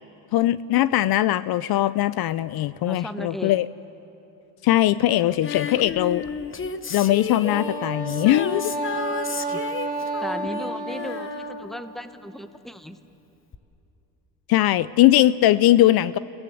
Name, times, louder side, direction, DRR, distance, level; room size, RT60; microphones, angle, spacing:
voice 1, 0.3-3.6 4.6-6.2 6.9-8.7 14.5-16.2, left 14 dB, 55° left, 16 dB, 0.6 m, -20 dB
voice 2, 2.8-3.6 9.3-9.6 10.2-13.0, equal, ahead, 10 dB, 1.0 m, -36 dB
Female singing, 5.4-12.4 13.5-13.6, left 6 dB, 30° left, 1.0 m, -33 dB
Wind instrument woodwind instrument, 7.4-11.7, right 2 dB, 20° right, 2.0 m, -30 dB
29.5 x 17.5 x 7.8 m, 2.9 s
cardioid pair, 105°, 44 cm